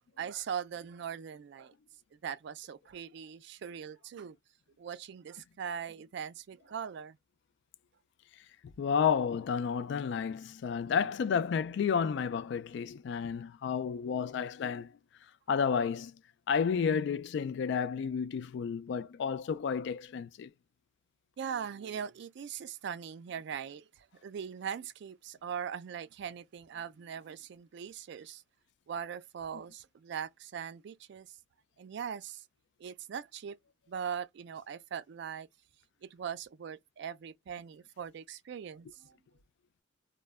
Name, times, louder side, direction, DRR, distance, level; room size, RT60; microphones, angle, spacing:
voice 1, 0.0-1.7 2.1-4.4 4.8-7.2 10.8-11.0 11.3-11.4 21.4-28.4 28.9-31.4 31.8-32.4 32.8-33.6 33.9-35.5 36.0-39.2, right 8 dB, 65° right, 0.3 m, -41 dB
voice 2, 8.8-14.9 15.5-16.1 16.5-20.5, left 6 dB, 65° left, 0.3 m, -31 dB
2.1 x 2.0 x 3.4 m
head